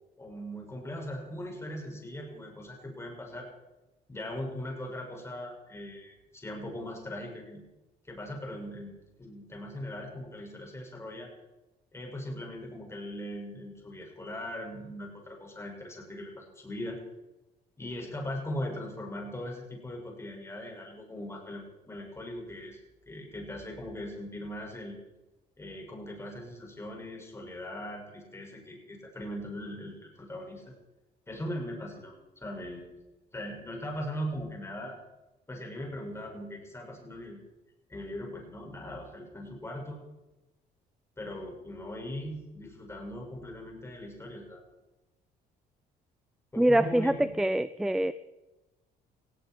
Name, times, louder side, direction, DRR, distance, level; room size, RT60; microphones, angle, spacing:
voice 1, 0.2-3.5 4.1-7.6 8.1-8.9 9.2-11.3 11.9-17.0 17.8-22.8 23.1-25.0 25.6-30.7 31.3-32.8 33.3-35.0 35.5-37.4 37.9-40.0 41.2-44.6 46.5-47.4, left 1 dB, 15° left, 0 dB, 6.1 m, -40 dB
voice 2, 46.6-48.1, right 1 dB, 5° right, 14 dB, 0.5 m, -25 dB
18.0 x 16.5 x 4.5 m, 1.0 s
cardioid pair, 110°, 17 cm